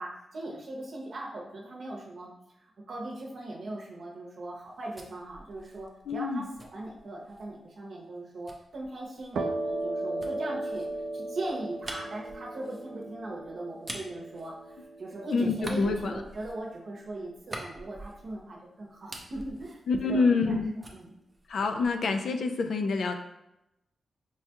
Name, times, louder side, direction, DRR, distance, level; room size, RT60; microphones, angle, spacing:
voice 1, 0.0-2.3 2.6-10.9 11.1-20.6 20.9-21.1, right 2 dB, 55° right, -2 dB, 0.7 m, -39 dB
sound 1, 4.5-7.6 8.5-15.1 15.5-18.6 18.9-20.5 20.8-22.1, right 1 dB, 20° right, 0.4 m, -46 dB
voice 2, 6.1-6.4 15.3-16.2 19.9-20.7 21.5-23.1, left 4 dB, 70° left, 6 dB, 0.3 m, -27 dB
sound 2, 9.3-16.8, right 2 dB, 90° right, 0.3 m, -37 dB
4.6 x 2.2 x 2.8 m, 0.87 s
wide cardioid pair, 160°, 0 cm